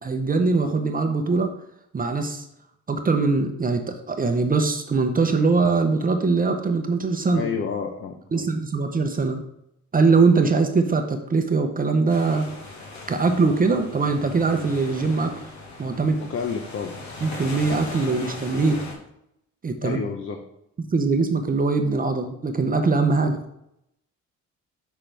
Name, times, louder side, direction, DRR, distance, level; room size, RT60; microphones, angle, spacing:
voice 1, 0.0-1.5 1.9-2.5 2.9-7.5 8.3-9.4 9.9-12.5 13.1-15.4 15.8-16.2 17.2-18.8 19.6-20.0 20.9-23.4, right 4 dB, 30° right, 6 dB, 0.8 m, -22 dB
voice 2, 7.3-8.5 16.3-16.9 19.8-20.4, left 6 dB, 45° left, 4 dB, 0.8 m, -30 dB
sound 1, 12.1-18.9, left 3 dB, 65° left, 1.6 m, -38 dB
6.0 x 5.9 x 3.3 m, 0.80 s
cardioid pair, 90°, 30 cm